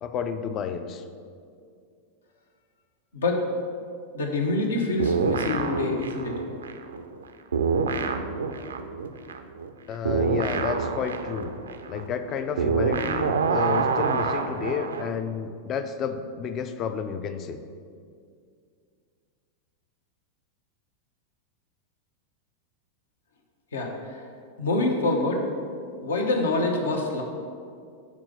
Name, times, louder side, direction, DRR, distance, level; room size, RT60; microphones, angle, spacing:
voice 1, 0.0-1.0 9.9-11.5 11.9-17.6, left 6 dB, 30° left, 9 dB, 0.5 m, -31 dB
voice 2, 3.1-3.5 4.1-6.4 23.7-24.2 24.6-25.4 26.0-27.2, left 2 dB, 65° left, 2 dB, 0.9 m, -26 dB
sound 1, 5.0-7.2 7.5-15.1, right 5 dB, 70° right, 0.4 m, -27 dB
6.0 x 4.2 x 6.3 m, 2.2 s
figure-of-eight pair, 90°, 0 cm